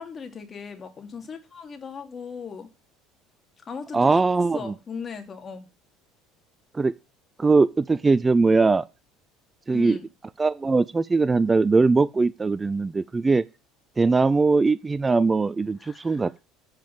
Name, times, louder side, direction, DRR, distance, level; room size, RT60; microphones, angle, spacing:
voice 1, 0.0-2.7 3.7-4.2 4.5-5.7 9.7-10.1 15.8-16.3, left 5 dB, 35° left, 2.5 m, -38 dB
voice 2, 3.9-4.7 6.7-6.9 7.4-8.8 9.7-10.0 10.4-13.4 14.0-16.3, right 3 dB, 20° right, 0.4 m, -21 dB
9.0 x 5.2 x 7.3 m
hypercardioid pair, 70°, 0 cm